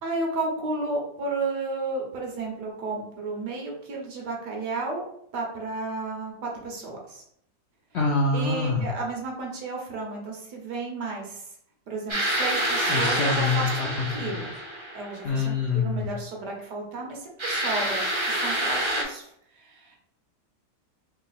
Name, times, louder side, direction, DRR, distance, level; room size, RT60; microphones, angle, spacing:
voice 1, 0.0-5.0 5.3-7.2 8.3-11.5 11.9-14.5 14.9-20.0, right 3 dB, 80° right, 0 dB, 1.7 m, -33 dB
voice 2, 7.9-8.9 12.9-14.4 15.2-16.1, left 4 dB, 65° left, -1 dB, 0.6 m, -26 dB
sound 1, 12.1-15.3 17.4-19.0, right 1 dB, 30° right, 0.5 m, -27 dB
3.6 x 2.9 x 4.1 m, 0.71 s
omnidirectional pair, 1.7 m